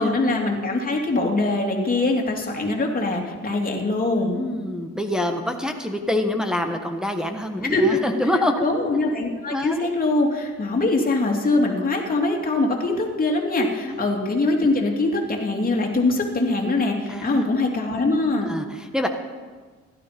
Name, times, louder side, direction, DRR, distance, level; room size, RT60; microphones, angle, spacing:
voice 1, 0.0-4.4 7.6-8.0 8.6-18.5, left 2 dB, 30° left, 0 dB, 2.9 m, -22 dB
voice 2, 4.2-8.7 9.5-9.8 13.8-14.1 17.1-17.5 18.4-19.1, left 1 dB, ahead, 3 dB, 1.3 m, -26 dB
16.0 x 12.0 x 5.3 m, 1.5 s
cardioid pair, 90°, 30 cm